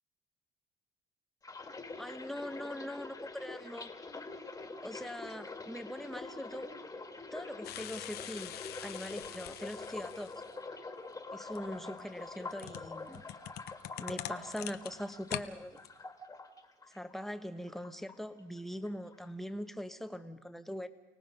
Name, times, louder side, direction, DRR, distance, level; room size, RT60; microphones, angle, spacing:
sound 1, 1.4-17.4 17.7-18.6 18.9-19.2, left 3 dB, 20° left, 2.0 m, -46 dB
voice 1, 2.0-3.9 4.8-6.7 7.3-8.5 8.8-10.4 11.3-13.2 14.0-15.8 16.9-20.9, equal, ahead, 8 dB, 1.2 m, -42 dB
sound 2, 7.6-10.5 11.5-15.5 15.8-15.9, left 13 dB, 70° left, 0.9 m, -44 dB
29.5 x 18.0 x 5.3 m, 1.1 s
cardioid pair, 110°, 17 cm